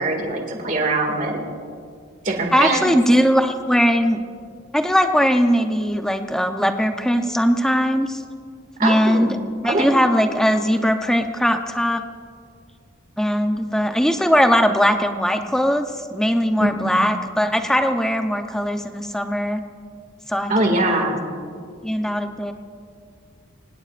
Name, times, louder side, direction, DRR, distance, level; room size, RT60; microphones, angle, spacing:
voice 1, 0.0-1.5 2.2-2.9 8.8-9.3 9.6-10.0 16.6-16.9 20.5-21.2, right 2 dB, 40° right, 3 dB, 2.2 m, -22 dB
voice 2, 2.5-4.2 4.7-8.2 8.8-9.4 9.6-12.0 13.2-15.8 16.1-19.6 20.3-21.1 21.8-22.5, equal, 5° left, 6 dB, 0.7 m, -20 dB
25.0 x 19.5 x 2.5 m, 2.2 s
head